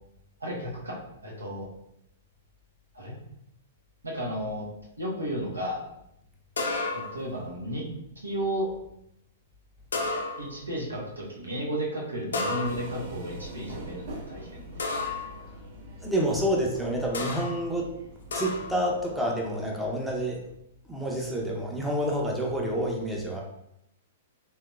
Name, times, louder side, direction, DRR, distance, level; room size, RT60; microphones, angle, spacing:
voice 1, 0.4-1.7 2.9-3.2 4.0-4.7 5.0-5.8 6.9-7.8 8.2-8.7 10.4-14.6, equal, 80° right, -2 dB, 0.9 m, -33 dB
sound 1, 6.6-7.3 9.9-10.7 12.3-13.1 14.8-15.4 17.1-17.6 18.3-18.8, left 3 dB, 65° left, 0.5 m, -31 dB
sound 2, 12.6-19.2, right 1 dB, 50° right, 0.9 m, -43 dB
voice 2, 16.0-17.9 18.3-20.4 20.9-23.4, equal, ahead, -3 dB, 0.6 m, -28 dB
3.6 x 2.8 x 2.3 m, 0.79 s
figure-of-eight pair, 105°, 0 cm